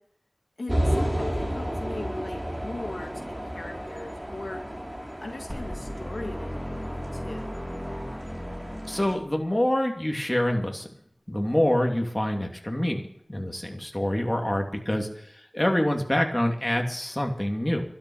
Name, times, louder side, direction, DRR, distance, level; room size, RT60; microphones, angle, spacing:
voice 1, 0.6-4.6 5.2-7.6, left 2 dB, 75° left, 2 dB, 2.1 m, -39 dB
sound 1, 0.7-9.2, equal, 25° right, 4.0 m, -32 dB
sound 2, 5.5-9.5, equal, ahead, 2.9 m, -36 dB
voice 2, 8.9-10.9 11.3-17.8, left 1 dB, 20° left, 2 dB, 2.9 m, -26 dB
13.0 x 9.5 x 9.0 m, 0.68 s
wide cardioid pair, 40°, 0 cm